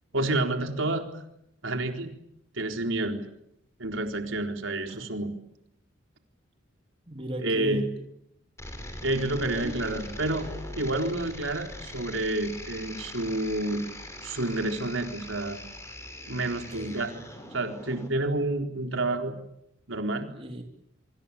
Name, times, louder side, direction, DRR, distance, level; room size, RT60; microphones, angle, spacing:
voice 1, 0.1-1.1 1.6-2.1 2.5-3.2 3.8-5.3 7.4-7.9 9.0-10.5 10.8-13.8 14.2-15.6 16.2-17.1 17.5-19.3 19.9-20.3, right 2 dB, 80° right, 5 dB, 4.1 m, -29 dB
voice 2, 7.1-7.9 9.6-9.8 16.4-17.0 20.3-20.6, right 1 dB, 30° right, 4 dB, 3.3 m, -36 dB
sound 1, 8.6-18.1, left 1 dB, 15° left, 5.5 m, -41 dB
26.5 x 25.5 x 8.5 m, 0.78 s
head